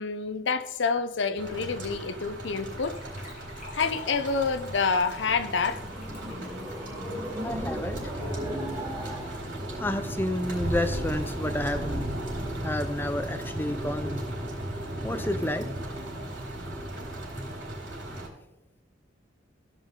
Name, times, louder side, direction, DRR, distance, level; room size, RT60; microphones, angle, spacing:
voice 1, 0.0-3.0 3.7-5.8, left 5 dB, 70° left, 0.6 m, -28 dB
sound 1, 1.4-18.3, right 1 dB, 70° right, 4.2 m, -35 dB
Gurgling / Trickle dribble / Fill (with liquid), 2.6-8.8 9.1-9.2 9.3-9.6 9.9-10.0, left 2 dB, 40° left, 3.1 m, -48 dB
sound 2, 5.7-10.7, equal, 10° right, 2.5 m, -38 dB
voice 2, 7.4-8.1 9.8-12.1 12.6-14.3 15.0-15.7, left 1 dB, 10° left, 0.4 m, -30 dB
16.5 x 5.5 x 3.7 m
head